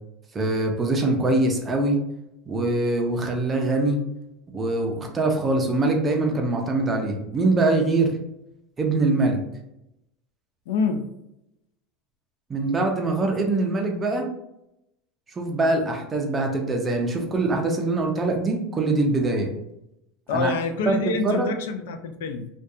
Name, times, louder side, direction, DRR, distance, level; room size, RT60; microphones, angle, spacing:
voice 1, 0.3-2.0 2.5-4.0 4.5-8.1 8.8-9.4 12.5-14.3 15.4-19.5 20.3-20.5 20.9-21.0 21.2-21.5, right 2 dB, 15° right, 2 dB, 0.4 m, -23 dB
voice 2, 10.7-11.1 20.3-22.5, left 4 dB, 85° left, 7 dB, 0.3 m, -26 dB
2.6 x 2.2 x 2.3 m, 0.85 s
supercardioid pair, 155°, 0 cm